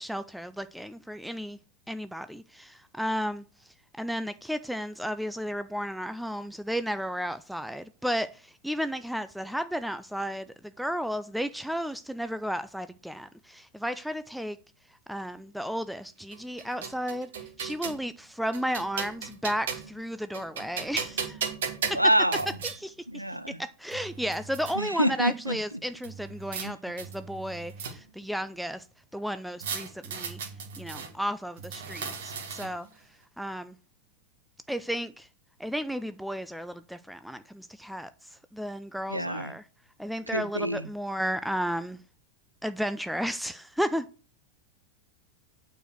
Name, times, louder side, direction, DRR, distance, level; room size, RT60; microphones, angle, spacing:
voice 1, 0.0-1.6 1.9-3.4 4.0-10.5 10.8-14.6 15.1-17.3 17.6-21.5 21.9-22.0 22.6-23.2 23.6-28.8 29.1-30.4 30.8-32.9 33.4-33.7 34.7-35.3 35.6-38.1 38.5-39.6 40.0-42.0 42.6-44.1, equal, ahead, 0.4 m, -33 dB
sound 1, 16.3-18.0 18.5-20.0 20.3-22.8 23.5-23.6 23.9-24.7 26.0-26.7 27.0-28.2 29.6-31.1 31.6-32.9, right 6 dB, 60° right, 1.7 m, -36 dB
voice 2, 21.9-22.5 23.1-23.6 24.8-25.6 26.6-26.7 39.1-39.5 40.3-40.8, right 1 dB, 90° right, 0.7 m, -26 dB
8.8 x 4.6 x 6.4 m
figure-of-eight pair, 90°, 0 cm